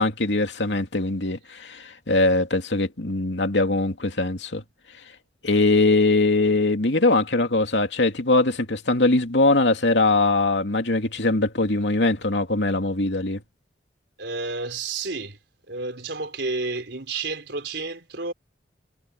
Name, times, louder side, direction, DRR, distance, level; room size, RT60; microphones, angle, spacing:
voice 1, 0.0-4.6 5.4-13.4, left 2 dB, 90° left, 2.6 m, -21 dB
voice 2, 14.2-15.4 15.7-18.3, right 3 dB, 80° right, 3.8 m, -30 dB
head